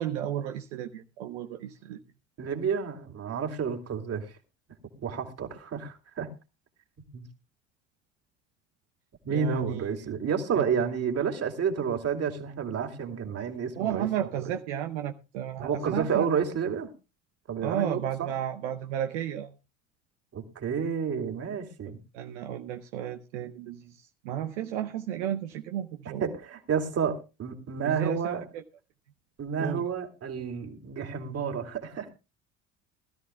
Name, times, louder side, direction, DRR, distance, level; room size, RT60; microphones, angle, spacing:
voice 1, 0.0-2.0 9.3-9.9 10.6-10.7 13.8-16.3 17.6-19.5 22.1-26.3 27.8-28.6 29.6-29.9, right 10 dB, 75° right, 0.9 m, -33 dB
voice 2, 2.4-4.3 5.0-6.3 7.0-7.2 9.2-14.1 14.4-14.5 15.6-16.9 17.5-18.3 20.3-22.0 26.2-28.4 29.4-32.1, right 6 dB, 40° right, 2.8 m, -30 dB
21.0 x 13.0 x 2.3 m
hypercardioid pair, 65°, 36 cm